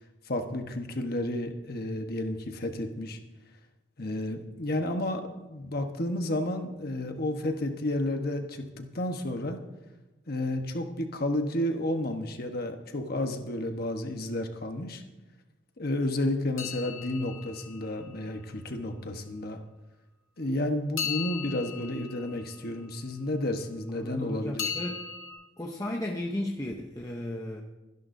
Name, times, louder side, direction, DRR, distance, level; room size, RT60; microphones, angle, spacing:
voice 1, 0.3-3.2 4.0-9.6 10.3-15.0 15.8-19.6 20.4-24.7, left 1 dB, 50° left, 5 dB, 1.2 m, -31 dB
sound 1, 16.6-18.6 21.0-23.3 24.6-25.3, left 7 dB, 85° left, 1.9 m, -38 dB
voice 2, 24.0-25.0 25.6-27.6, left 1 dB, 15° left, 1 dB, 0.8 m, -34 dB
23.0 x 11.0 x 2.7 m, 1.1 s
head